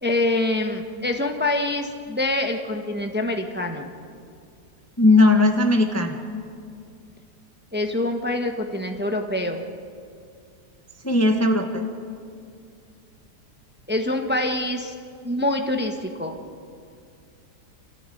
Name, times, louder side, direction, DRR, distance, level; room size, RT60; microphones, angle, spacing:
voice 1, 0.0-3.9 7.7-9.6 13.9-14.9 15.2-16.4, left 1 dB, 5° right, 4 dB, 1.2 m, -25 dB
voice 2, 5.0-6.2 11.0-11.9, left 2 dB, 10° left, 4 dB, 1.1 m, -18 dB
26.5 x 14.0 x 9.2 m, 2.4 s
omnidirectional pair, 1.7 m